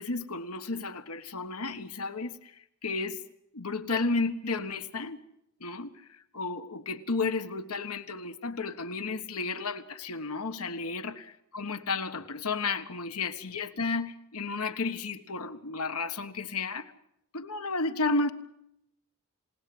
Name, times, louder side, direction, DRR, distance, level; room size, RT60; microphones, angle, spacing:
voice 1, 0.0-3.2 3.5-5.2 5.6-11.2 11.5-16.9 17.3-18.3, left 3 dB, 90° left, 1.5 m, -32 dB
28.5 x 18.5 x 7.9 m
head